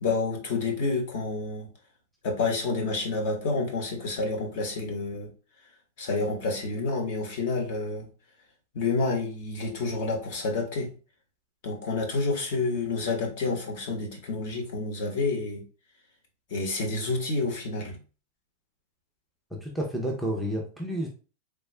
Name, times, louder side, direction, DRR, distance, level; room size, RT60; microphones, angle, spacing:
voice 1, 0.0-1.7 2.2-5.3 6.0-8.1 8.7-10.9 11.6-15.6 16.5-18.0, left 3 dB, 50° left, 2 dB, 1.0 m, -29 dB
voice 2, 19.5-21.1, equal, ahead, -1 dB, 0.4 m, -30 dB
3.5 x 2.2 x 3.2 m, 0.36 s
supercardioid pair, 170°, 0 cm